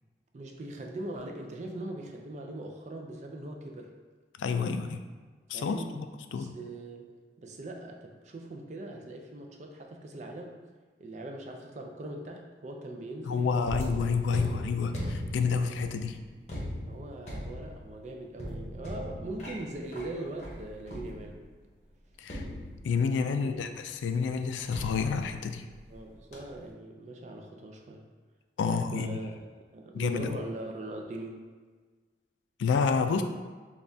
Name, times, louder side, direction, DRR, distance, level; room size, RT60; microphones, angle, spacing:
voice 1, 0.3-3.9 5.5-6.0 6.2-7.1 7.4-10.6 11.0-14.0 14.4-14.7 16.9-21.4 23.4-23.6 25.9-28.1 28.6-29.4 29.7-31.5, right 2 dB, 40° right, 2 dB, 0.4 m, -41 dB
voice 2, 4.4-5.0 5.5-6.1 6.3-6.5 13.3-16.2 22.2-22.4 22.8-25.7 28.6-29.2 29.9-30.3 32.6-33.2, left 5 dB, 90° left, 7 dB, 0.3 m, -29 dB
sound 1, 13.6-21.6 22.3-23.3 24.7-26.0 26.3-26.7, left 1 dB, 40° left, 0.8 m, -39 dB
5.3 x 2.3 x 2.6 m, 1.5 s
head